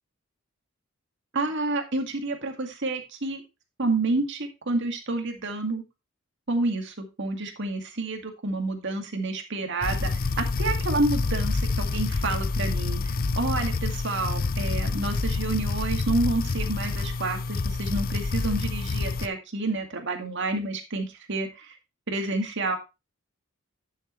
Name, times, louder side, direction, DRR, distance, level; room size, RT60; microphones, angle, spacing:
voice 1, 1.3-3.4 3.8-5.8 6.5-10.1 10.4-21.7 22.1-22.8, right 2 dB, 60° right, 4 dB, 2.1 m, -29 dB
sound 1, 9.8-19.3, left 3 dB, 45° left, 0.5 m, -27 dB
11.0 x 6.8 x 3.1 m, 0.26 s
head